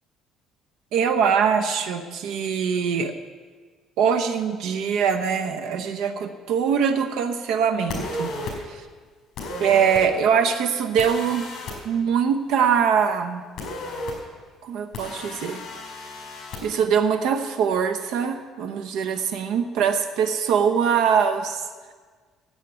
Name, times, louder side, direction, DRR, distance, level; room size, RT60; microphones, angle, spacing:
voice 1, 0.9-3.1 4.0-8.8 9.6-11.5 11.8-13.4 14.6-15.6 16.6-21.6, right 7 dB, 80° right, 7 dB, 0.9 m, -23 dB
sound 1, 7.9-8.5 9.4-10.0 11.0-11.7 13.6-14.1 14.9-16.6, left 2 dB, 50° left, 5.1 m, -33 dB
11.5 x 8.3 x 9.2 m, 1.5 s
cardioid pair, 135°, 0 cm